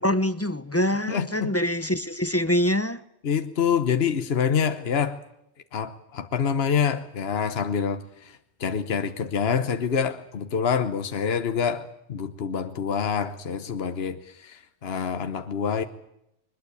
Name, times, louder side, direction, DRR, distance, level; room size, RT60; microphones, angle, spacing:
voice 1, 0.0-3.0, left 1 dB, 15° left, 0.7 m, -24 dB
voice 2, 1.1-1.5 3.2-5.2 5.7-8.3 8.6-15.8, left 7 dB, 65° left, 1.3 m, -26 dB
22.0 x 20.5 x 8.4 m
omnidirectional pair, 1.2 m